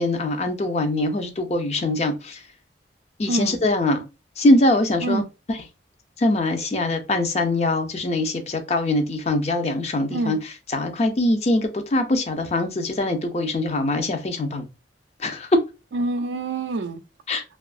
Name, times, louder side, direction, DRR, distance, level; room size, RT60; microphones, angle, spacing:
voice 1, 0.0-2.4 3.2-4.0 4.4-5.2 6.2-10.4 10.7-14.6 15.2-15.5 17.3-17.4, left 2 dB, 35° left, 0.5 m, -23 dB
voice 2, 3.3-3.6 5.0-5.3 10.1-10.4 15.9-17.0, right 2 dB, 85° right, 0.4 m, -26 dB
2.7 x 2.4 x 2.3 m
head